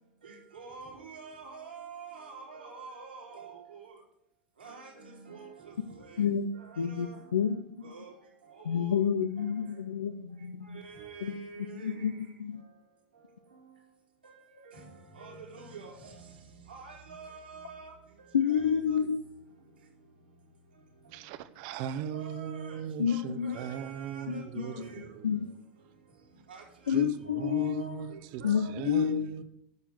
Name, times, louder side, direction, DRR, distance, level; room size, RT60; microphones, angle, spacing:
voice 1, 0.2-3.9 4.6-6.2 6.5-7.3 7.8-8.1 8.5-9.0 9.4-9.5 10.7-12.1 13.5-13.6 14.2-16.3 16.7-17.9 18.5-19.0 21.8-25.1 26.5-28.9, right 4 dB, 90° right, 3.9 m, -47 dB
voice 2, 6.8-7.6 8.7-10.8 11.2-11.3 11.8-12.6 18.3-19.2 23.0-23.6 24.3-24.7 25.2-25.5 26.9-28.1 28.4-29.3, left 8 dB, 85° left, 0.6 m, -29 dB
voice 3, 21.1-25.3 26.9-29.4, right 9 dB, 60° right, 1.0 m, -38 dB
9.6 x 7.2 x 7.8 m
hypercardioid pair, 85°, 5 cm